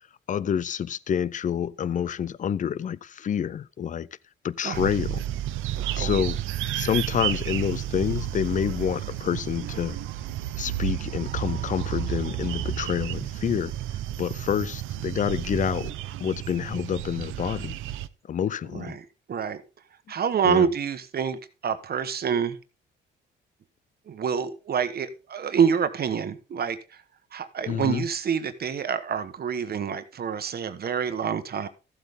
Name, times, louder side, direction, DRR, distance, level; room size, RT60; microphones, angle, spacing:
voice 1, 0.3-4.1 4.4-5.2 5.9-6.4 6.7-10.0 10.6-13.7 14.2-15.9 16.2-17.8 18.3-19.0 20.4-20.7 27.7-28.0, left 8 dB, 40° left, 0.5 m, -28 dB
sound 1, 4.7-18.1, right 12 dB, 90° right, 0.7 m, -31 dB
voice 2, 18.7-19.6 20.1-22.6 24.1-27.0 27.3-31.7, right 7 dB, 50° right, 1.2 m, -27 dB
14.0 x 7.9 x 3.6 m
cardioid pair, 90°, 20 cm